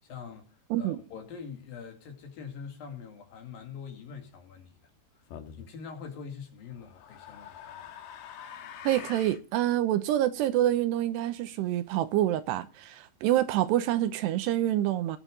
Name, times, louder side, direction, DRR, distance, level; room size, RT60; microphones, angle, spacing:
voice 1, 0.0-4.8 5.6-7.8, left 6 dB, 60° left, 3.9 m, -44 dB
sound 1, 5.3-5.7 6.7-9.4, left 9 dB, 80° left, 3.6 m, -45 dB
voice 2, 8.8-15.2, right 13 dB, 80° right, 2.9 m, -27 dB
20.0 x 6.9 x 5.3 m
omnidirectional pair, 5.0 m